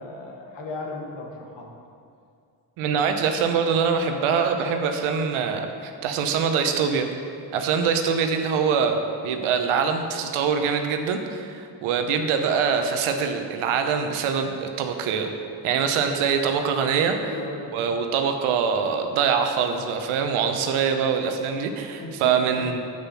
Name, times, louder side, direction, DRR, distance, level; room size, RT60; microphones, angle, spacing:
voice 1, 0.0-1.7 11.9-12.1 17.1-17.8 20.6-20.9 22.0-22.8, left 2 dB, 60° left, 0 dB, 1.8 m, -36 dB
voice 2, 2.8-7.1 7.5-9.0 9.2-15.3 15.6-17.2 17.7-22.8, right 6 dB, 85° right, 6 dB, 1.0 m, -24 dB
8.0 x 6.9 x 5.7 m, 2.4 s
supercardioid pair, 60°, 49 cm